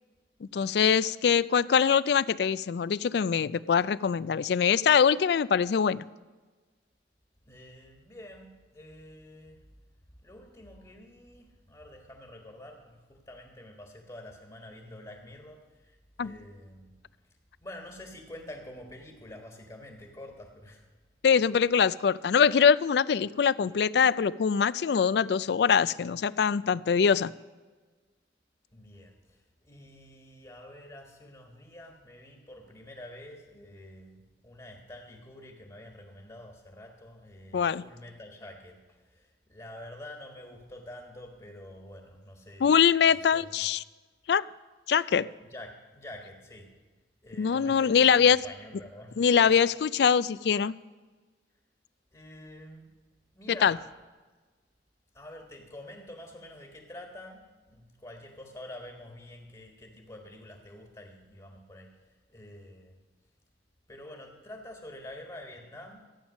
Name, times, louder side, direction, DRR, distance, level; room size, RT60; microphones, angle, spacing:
voice 1, 0.4-6.0 16.2-16.3 21.2-27.3 37.5-37.8 42.6-43.8 44.3-44.5 44.9-45.3 47.4-48.4 49.2-50.7 53.6-53.8, left 7 dB, 65° left, 19 dB, 0.4 m, -23 dB
voice 2, 7.4-9.6 10.2-17.0 17.6-20.9 28.7-42.7 43.1-43.6 45.4-46.7 47.2-49.5 52.1-52.9 53.3-53.8 55.1-63.0 63.9-66.0, left 1 dB, 25° left, 2 dB, 1.5 m, -47 dB
14.5 x 8.9 x 6.3 m, 1.3 s
head